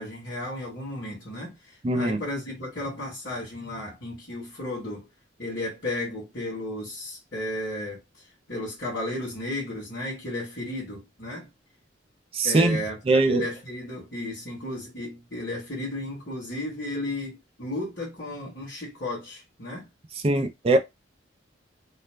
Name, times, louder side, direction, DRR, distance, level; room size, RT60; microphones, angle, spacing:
voice 1, 0.0-5.1 5.4-8.0 8.5-11.5 12.4-19.9, left 1 dB, 55° left, 1.2 m, -34 dB
voice 2, 1.8-2.2 12.3-12.8 13.1-13.4 20.2-20.8, right 2 dB, 30° right, 0.4 m, -21 dB
2.5 x 2.1 x 3.1 m
head